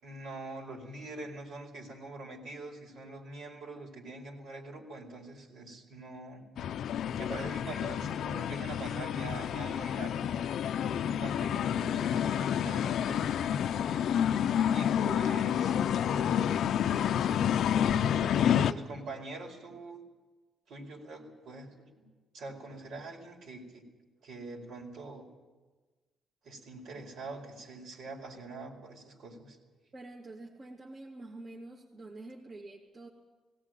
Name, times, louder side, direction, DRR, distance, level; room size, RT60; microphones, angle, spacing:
voice 1, 0.0-6.4 7.2-10.3 10.7-13.3 14.7-15.8 16.1-16.3 17.0-17.5 18.2-20.0 20.7-22.0 22.3-23.8 24.2-25.3 26.4-29.6, right 2 dB, 70° right, 0 dB, 4.8 m, -44 dB
sound 1, 6.6-18.7, left 9 dB, 70° left, 0.6 m, -29 dB
voice 2, 29.9-33.1, right 2 dB, 40° right, -2 dB, 2.8 m, -47 dB
18.0 x 17.5 x 9.1 m, 1.3 s
cardioid pair, 90°, 0 cm